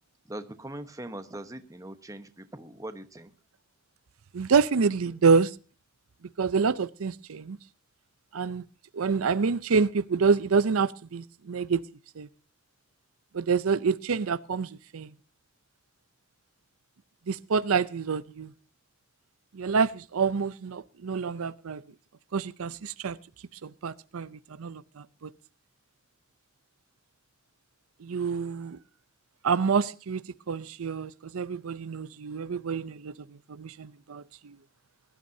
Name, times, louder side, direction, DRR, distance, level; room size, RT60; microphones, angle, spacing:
voice 1, 0.3-3.3, right 1 dB, 15° right, 1.1 m, -41 dB
voice 2, 4.3-5.5 6.4-7.6 8.3-8.6 8.9-11.8 12.2-12.3 13.3-15.1 17.3-18.5 19.5-21.8 22.3-23.2 23.6-24.3 24.6-25.3 28.0-28.8 29.4-33.1 33.5-34.6, right 5 dB, 80° right, 0.6 m, -27 dB
21.5 x 12.5 x 2.7 m
head